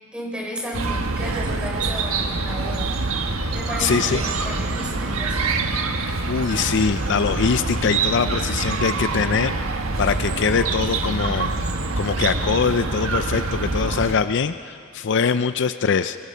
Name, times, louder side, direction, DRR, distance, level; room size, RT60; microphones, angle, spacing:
voice 1, 0.1-2.9 3.5-5.5, equal, 5° right, -1 dB, 4.1 m, -33 dB
Chirp tweet, 0.7-14.1, right 3 dB, 80° right, 1.3 m, -25 dB
voice 2, 3.8-4.3 6.3-11.5 12.0-16.2, left 5 dB, 60° left, 11 dB, 0.5 m, -23 dB
25.5 x 23.0 x 5.6 m, 2.3 s
head